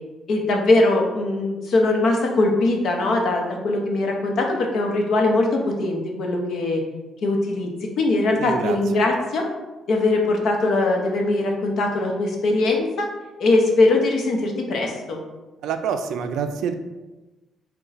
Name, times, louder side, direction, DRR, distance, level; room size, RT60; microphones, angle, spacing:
voice 1, 0.3-6.8 7.2-7.7 8.0-9.5 9.9-13.1 13.4-15.2, left 2 dB, 70° left, 1 dB, 0.7 m, -21 dB
voice 2, 8.3-8.8 15.6-16.7, right 7 dB, 80° right, 8 dB, 0.3 m, -26 dB
4.0 x 2.2 x 3.9 m, 1.1 s
cardioid pair, 90°, 0 cm